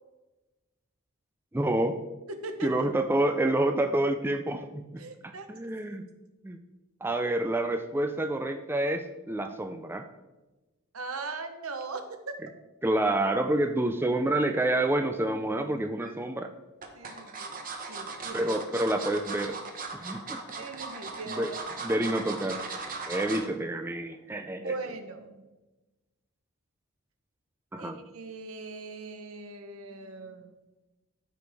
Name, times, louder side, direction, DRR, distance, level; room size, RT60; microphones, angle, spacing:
voice 1, 1.5-2.0 2.6-4.8 5.5-6.1 6.4-6.6 7.0-10.1 12.8-16.5 18.3-19.6 20.0-20.4 21.3-21.5 21.8-22.6 23.1-24.7 27.7-28.0, right 1 dB, 10° right, 6 dB, 0.4 m, -28 dB
voice 2, 2.3-2.7 5.0-5.5 10.9-12.4 14.5-14.6 16.9-18.5 20.6-21.8 23.2-23.3 24.6-25.4 27.8-30.5, right 3 dB, 85° right, 7 dB, 1.0 m, -40 dB
sound 1, 15.6-16.1 16.8-23.5 23.9-24.1 24.4-24.5, right 4 dB, 40° right, 1.1 m, -38 dB
13.0 x 5.1 x 3.5 m, 1.1 s
head